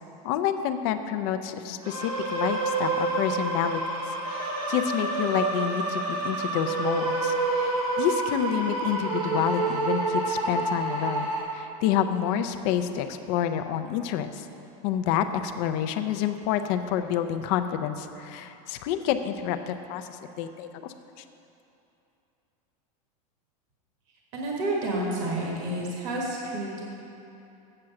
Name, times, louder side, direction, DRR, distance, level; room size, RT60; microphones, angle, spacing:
voice 1, 0.2-3.8 4.3-11.3 11.5-14.5 14.8-20.9, left 9 dB, 40° left, 8 dB, 0.4 m, -28 dB
sound 1, 1.8-11.4, right 3 dB, 85° right, 2.0 m, -28 dB
voice 2, 24.3-26.8, right 1 dB, 40° right, -2 dB, 1.5 m, -30 dB
7.7 x 7.4 x 5.8 m, 2.8 s
supercardioid pair, 165°, 18 cm